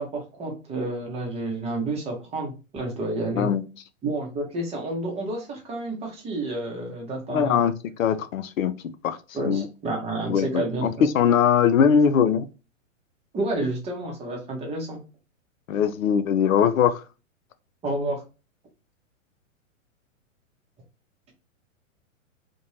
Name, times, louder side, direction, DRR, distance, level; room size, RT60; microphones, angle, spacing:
voice 1, 0.0-3.5 4.0-7.6 9.3-11.1 13.3-15.0 17.8-18.2, right 2 dB, 15° right, 0.7 m, -30 dB
voice 2, 7.3-7.7 8.0-8.7 9.0-9.2 9.5-9.7 10.3-12.5 15.7-17.0, left 7 dB, 80° left, 0.5 m, -21 dB
2.5 x 2.2 x 3.0 m
hypercardioid pair, 115°, 39 cm